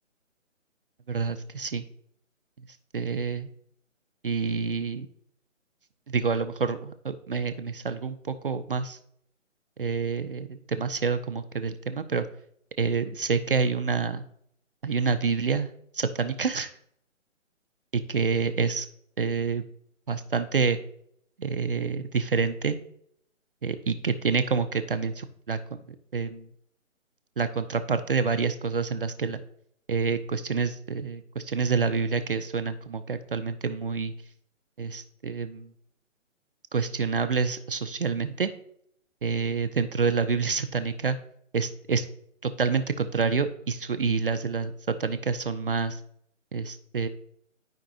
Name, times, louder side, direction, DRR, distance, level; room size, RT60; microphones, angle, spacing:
voice 1, 1.1-1.8 2.9-3.5 4.2-5.1 6.1-9.0 9.8-12.3 12.8-14.2 14.8-15.7 15.9-16.7 17.9-18.9 19.2-19.6 20.1-20.8 21.4-22.8 23.6-25.6 26.1-26.4 27.4-29.4 29.9-34.1 34.8-35.7 36.7-38.5 39.2-41.2 41.5-42.0 42.4-44.7 45.0-46.0 46.5-47.1, right 5 dB, 45° right, 9 dB, 0.5 m, -27 dB
12.0 x 5.2 x 2.5 m, 0.68 s
figure-of-eight pair, 155°, 39 cm